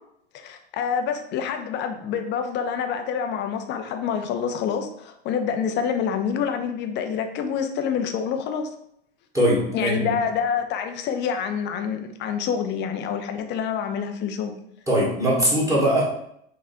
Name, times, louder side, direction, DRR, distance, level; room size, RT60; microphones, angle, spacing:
voice 1, 0.3-8.7 9.7-14.5, left 7 dB, 35° left, 7 dB, 0.6 m, -27 dB
voice 2, 9.3-10.1 14.9-16.0, equal, 10° right, -5 dB, 1.6 m, -21 dB
4.9 x 3.1 x 2.7 m, 0.73 s
hypercardioid pair, 95°, 32 cm